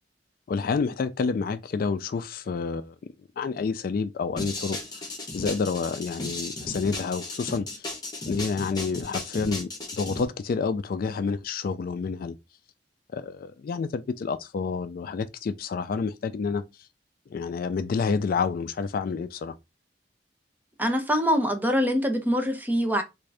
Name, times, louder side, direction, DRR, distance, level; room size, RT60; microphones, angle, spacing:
voice 1, 0.5-2.9 3.4-4.8 5.3-7.8 8.3-12.3 13.1-16.6 17.3-19.5, left 5 dB, 55° left, 0.3 m, -29 dB
sound 1, 4.4-10.2, left 2 dB, 25° left, 1.1 m, -35 dB
voice 2, 20.8-23.0, equal, 10° right, 0.6 m, -24 dB
3.6 x 2.6 x 3.3 m
head